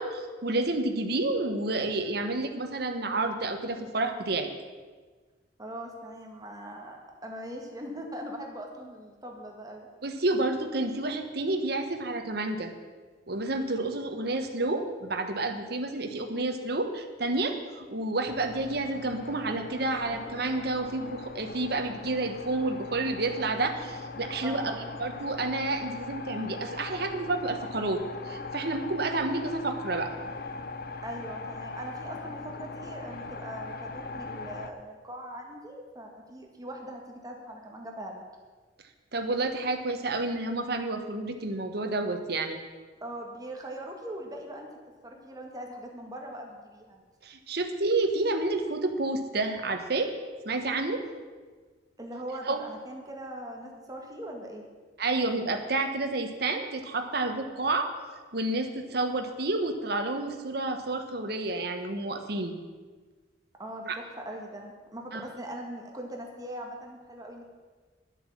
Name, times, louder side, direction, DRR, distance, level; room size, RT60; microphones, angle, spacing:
voice 1, 0.0-4.5 10.0-12.7 13.3-24.7 25.0-30.1 39.1-42.6 47.2-50.1 50.4-51.0 52.5-52.6 55.0-57.9 58.3-62.5 63.9-64.0 65.1-65.2, right 2 dB, 60° right, 6 dB, 1.3 m, -30 dB
voice 2, 5.6-7.0 7.2-9.9 24.4-24.9 31.0-38.2 43.0-44.7 45.0-47.0 52.0-54.7 58.9-59.2 63.6-67.5, right 1 dB, 20° right, 1 dB, 1.8 m, -41 dB
sound 1, 18.3-34.7, left 3 dB, 55° left, 0.8 m, -40 dB
11.0 x 7.9 x 7.4 m, 1.4 s
head